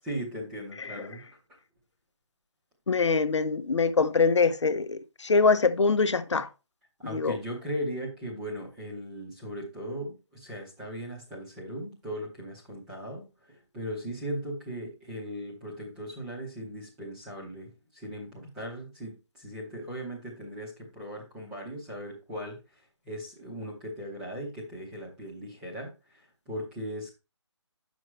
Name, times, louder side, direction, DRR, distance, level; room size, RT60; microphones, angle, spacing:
voice 1, 0.0-1.6 7.0-22.6 23.0-27.1, equal, 5° right, 0.8 m, -38 dB
voice 2, 2.9-6.5 7.1-7.4, left 4 dB, 70° left, 0.8 m, -24 dB
8.3 x 6.2 x 3.2 m
hypercardioid pair, 175°, 15 cm